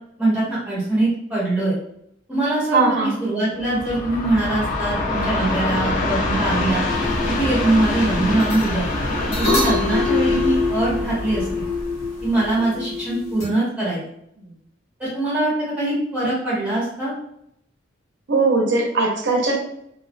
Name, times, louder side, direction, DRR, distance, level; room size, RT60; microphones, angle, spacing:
voice 1, 0.2-1.8 2.3-6.9 7.2-8.9 9.4-11.5 12.2-14.0 15.0-17.1, right 2 dB, 10° right, -9 dB, 1.0 m, -22 dB
voice 2, 2.7-3.2 14.4-14.5 18.3-19.6, right 3 dB, 60° right, 0 dB, 0.5 m, -19 dB
Train, 3.6-12.8, left 2 dB, 40° left, 0.5 m, -25 dB
sound 1, 6.9-13.5, left 4 dB, 80° left, 1.0 m, -26 dB
2.4 x 2.1 x 2.4 m, 0.73 s
head